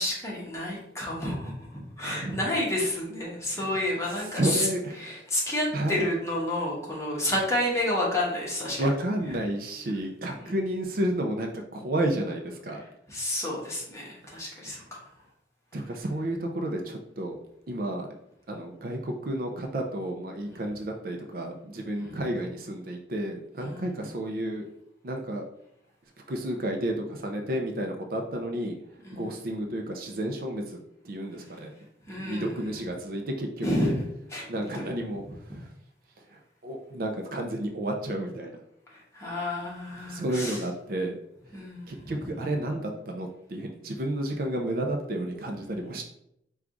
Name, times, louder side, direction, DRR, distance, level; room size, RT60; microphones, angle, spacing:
voice 1, 0.0-4.7 5.0-8.8 10.3-10.5 13.1-15.0 22.0-22.2 23.6-23.8 29.0-29.2 32.1-32.6 33.6-34.8 38.9-40.6 41.5-42.1, left 1 dB, 15° left, -5 dB, 1.1 m, -30 dB
voice 2, 2.0-2.3 2.8-2.9 3.5-3.7 4.0-5.2 5.7-6.1 8.8-12.8 15.7-17.4 17.7-18.1 18.5-24.6 25.0-25.5 26.3-28.8 29.1-31.7 32.2-33.9 34.5-35.7 36.3-38.6 40.0-41.2 41.9-46.0, right 1 dB, 55° right, 3 dB, 0.5 m, -31 dB
4.6 x 2.4 x 3.8 m, 0.77 s
head